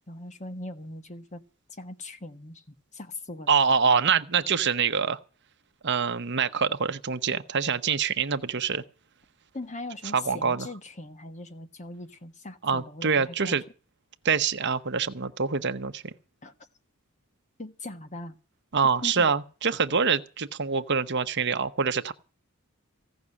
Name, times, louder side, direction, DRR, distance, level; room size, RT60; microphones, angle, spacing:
voice 1, 0.1-1.4 1.7-2.6 2.9-3.5 9.5-13.6 16.4-16.5 17.6-18.4 19.0-19.3, left 2 dB, 35° left, 1.4 m, -40 dB
voice 2, 3.5-5.2 5.8-8.8 10.1-10.7 12.6-13.6 14.2-16.1 18.7-22.1, right 6 dB, 55° right, 1.0 m, -25 dB
16.5 x 6.2 x 9.8 m
head